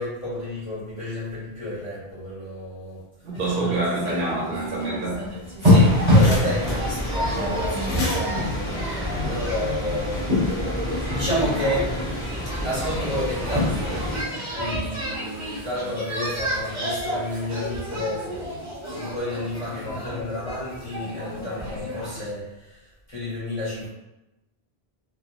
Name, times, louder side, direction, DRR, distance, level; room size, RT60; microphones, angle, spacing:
voice 1, 0.0-3.0 5.6-10.2 11.1-12.0 12.6-14.0 14.5-18.2 18.9-22.8 23.1-23.9, left 1 dB, 35° left, -9 dB, 1.3 m, -31 dB
voice 2, 3.2-5.3, right 2 dB, 60° right, -4 dB, 0.6 m, -26 dB
sound 1, 3.3-22.3, left 1 dB, 30° right, 0.8 m, -26 dB
sound 2, 5.4-9.7, left 1 dB, 70° left, 0.9 m, -35 dB
sound 3, 5.6-14.2, equal, 15° left, 0.5 m, -30 dB
2.8 x 2.1 x 2.4 m, 0.97 s
omnidirectional pair, 1.1 m